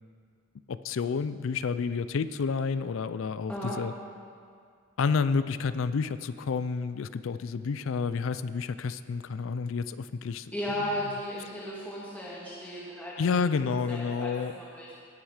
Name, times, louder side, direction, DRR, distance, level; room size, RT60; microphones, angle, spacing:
voice 1, 0.7-3.9 5.0-10.9 13.2-14.5, left 5 dB, 70° left, 14 dB, 0.4 m, -30 dB
voice 2, 10.5-14.9, equal, 5° left, -7 dB, 1.8 m, -36 dB
18.5 x 6.4 x 4.9 m, 2.2 s
head